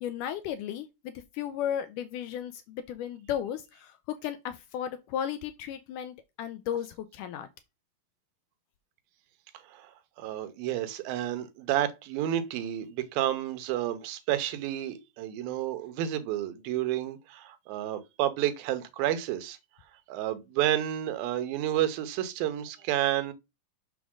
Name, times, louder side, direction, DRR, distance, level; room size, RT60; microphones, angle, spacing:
voice 1, 0.0-7.5, left 10 dB, 80° left, 1.9 m, -35 dB
voice 2, 9.7-19.6 20.1-23.3, right 12 dB, 85° right, 2.7 m, -30 dB
6.9 x 3.7 x 6.1 m
omnidirectional pair, 4.1 m